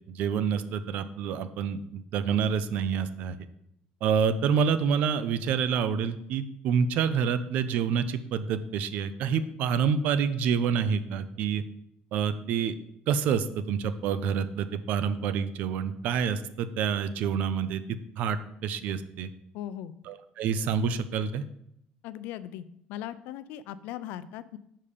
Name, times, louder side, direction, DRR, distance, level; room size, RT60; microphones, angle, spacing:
voice 1, 0.1-3.4 4.0-11.6 12.1-12.7 13.1-17.8 18.2-19.3 20.1-21.4, right 7 dB, 55° right, 13 dB, 0.5 m, -27 dB
voice 2, 19.5-19.9 22.0-24.6, left 11 dB, 75° left, 14 dB, 0.4 m, -39 dB
5.5 x 5.2 x 6.7 m, 0.74 s
cardioid pair, 180°, 3 cm